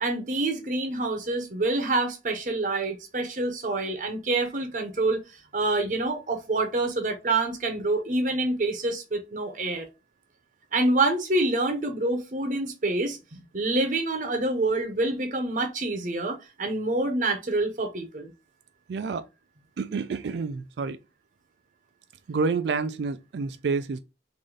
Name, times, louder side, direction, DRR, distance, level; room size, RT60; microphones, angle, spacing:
voice 1, 0.0-5.2 5.5-9.9 10.7-18.3, right 2 dB, 45° right, 0.7 m, -27 dB
voice 2, 18.9-19.3 19.8-21.0 22.3-24.0, right 4 dB, 80° right, 0.4 m, -28 dB
3.8 x 2.6 x 3.1 m
head